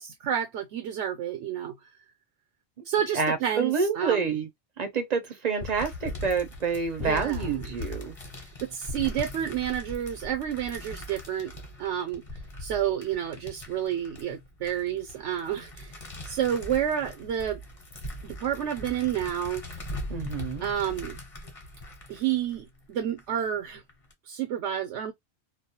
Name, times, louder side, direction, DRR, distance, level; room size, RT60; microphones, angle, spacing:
voice 1, 0.0-1.7 2.9-4.3 7.0-7.8 8.6-11.5 11.8-12.2 12.6-15.9 16.3-17.6 18.2-19.6 20.6-21.2 22.1-23.8 24.3-25.1, right 9 dB, 85° right, 0.9 m, -30 dB
voice 2, 3.1-4.5 4.8-8.1 20.1-20.7, right 5 dB, 50° right, 0.5 m, -28 dB
sound 1, 5.6-23.2 23.7-24.1, left 2 dB, 35° left, 0.8 m, -40 dB
2.3 x 2.1 x 2.7 m
omnidirectional pair, 1.2 m